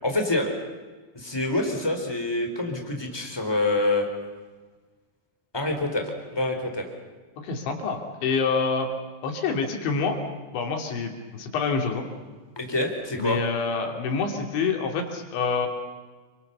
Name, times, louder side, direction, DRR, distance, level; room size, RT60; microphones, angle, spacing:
voice 1, 0.0-0.5 1.1-4.1 5.5-6.9 12.5-13.4, left 2 dB, 5° left, 2 dB, 3.4 m, -26 dB
voice 2, 7.4-8.9 9.2-10.2 10.5-12.1 13.2-15.7, left 5 dB, 70° left, 3 dB, 5.2 m, -27 dB
29.0 x 24.5 x 7.0 m, 1.4 s
omnidirectional pair, 5.6 m